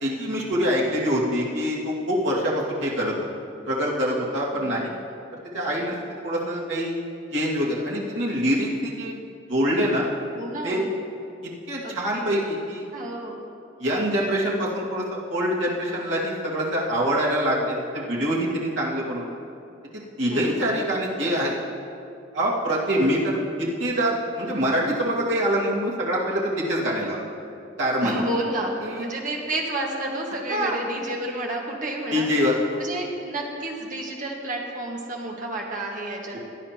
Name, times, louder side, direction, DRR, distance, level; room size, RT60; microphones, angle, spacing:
voice 1, 0.0-3.1 3.7-4.9 5.5-5.9 6.2-6.9 7.3-9.1 9.5-10.0 10.6-10.8 11.4-12.9 13.8-19.3 20.2-21.6 22.3-27.2 27.8-28.1 28.8-29.0 30.5-30.8 32.1-32.8, equal, 80° right, -5 dB, 2.2 m, -25 dB
voice 2, 4.5-5.1 10.4-10.9 11.8-12.4 12.9-13.4 20.3-20.6 28.0-32.3 32.8-36.4, right 1 dB, 40° right, -1 dB, 1.6 m, -31 dB
17.5 x 11.0 x 2.9 m, 2.5 s
head